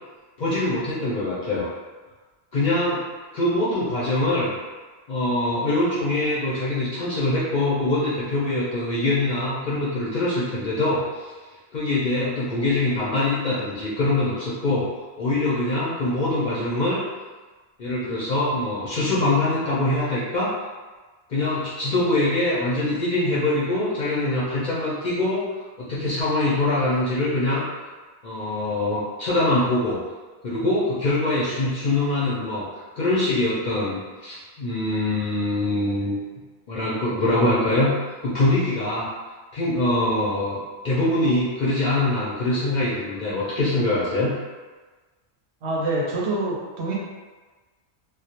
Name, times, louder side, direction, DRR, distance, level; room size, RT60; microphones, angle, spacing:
voice 1, 0.4-1.7 2.5-3.0 3.3-4.5 5.1-11.3 11.7-14.9 15.2-17.0 17.8-20.6 21.3-25.5 25.8-27.6 28.2-30.0 30.4-32.7 33.0-36.2 36.7-37.9 38.2-39.1 39.5-40.6 40.8-44.3, left 2 dB, 55° left, -8 dB, 0.5 m, -23 dB
voice 2, 45.6-46.9, right 2 dB, 75° right, -4 dB, 0.8 m, -26 dB
2.2 x 2.0 x 2.8 m, 1.3 s
omnidirectional pair, 1.2 m